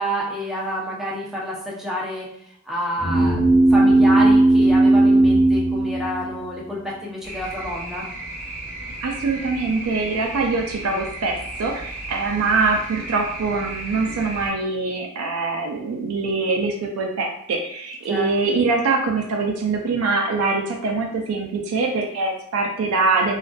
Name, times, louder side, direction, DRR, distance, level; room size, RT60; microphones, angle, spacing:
voice 1, 0.0-2.3 2.7-3.4 3.7-8.1 18.1-18.3, equal, ahead, -5 dB, 0.5 m, -28 dB
sound 1, 3.0-6.7, right 2 dB, 60° left, 0.7 m, -16 dB
sound 2, 7.2-14.5, right 2 dB, 30° left, 1.1 m, -34 dB
voice 2, 9.0-23.4, right 3 dB, 85° right, 1 dB, 0.4 m, -23 dB
2.4 x 2.3 x 2.2 m, 0.72 s
head